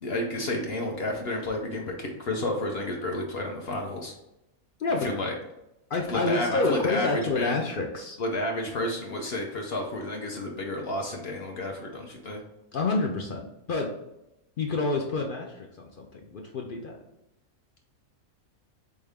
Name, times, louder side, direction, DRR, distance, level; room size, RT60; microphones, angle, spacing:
voice 1, 0.0-4.1 5.0-5.3 6.1-7.6 8.2-12.4, left 1 dB, 50° left, 1 dB, 0.8 m, -31 dB
voice 2, 5.9-8.2 12.7-13.9 14.6-17.0, left 3 dB, 70° left, 1 dB, 0.5 m, -28 dB
4.1 x 3.6 x 3.4 m, 0.90 s
omnidirectional pair, 1.6 m